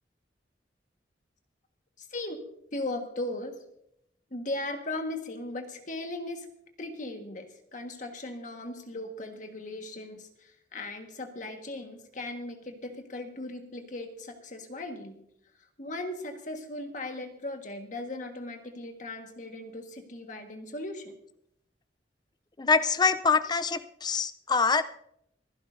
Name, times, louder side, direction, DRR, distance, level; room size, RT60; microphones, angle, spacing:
voice 1, 2.0-2.4 2.7-3.6 4.3-6.5 6.8-15.2 15.8-21.2, left 2 dB, 45° left, 5 dB, 1.6 m, -38 dB
voice 2, 22.6-24.8, left 5 dB, 25° left, 13 dB, 0.5 m, -25 dB
25.5 x 11.0 x 2.7 m, 0.74 s
head